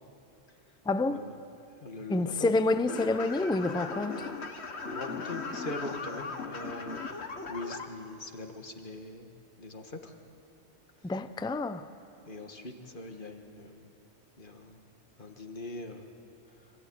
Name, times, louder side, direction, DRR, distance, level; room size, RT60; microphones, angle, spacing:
voice 1, 0.9-1.3 2.1-4.3 11.0-11.9, left 2 dB, 5° left, 0.4 m, -28 dB
voice 2, 1.8-2.7 4.9-9.3 9.6-10.1 11.0-11.1 12.3-14.0 14.4-14.8 15.2-16.1 16.5-16.7, left 2 dB, 45° left, 1.8 m, -42 dB
sound 1, 2.9-7.9, left 4 dB, 65° left, 1.7 m, -38 dB
25.5 x 15.5 x 9.6 m
omnidirectional pair, 1.2 m